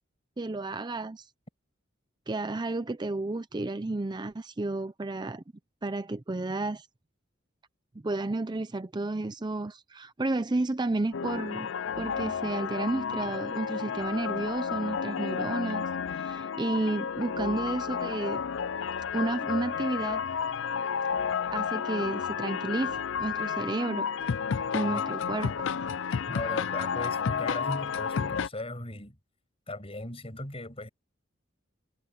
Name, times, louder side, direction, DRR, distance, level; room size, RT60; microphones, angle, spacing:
voice 1, 0.4-1.3 2.3-5.4 5.8-6.9 8.0-11.7 12.0-18.4 19.1-20.2 21.5-24.1 24.7-25.7, right 2 dB, 20° right, 0.5 m, -32 dB
sound 1, 11.1-28.5, left 6 dB, 65° left, 0.4 m, -31 dB
voice 2, 24.7-25.1 26.3-29.2 29.7-30.9, left 2 dB, 30° left, 7.7 m, -37 dB
head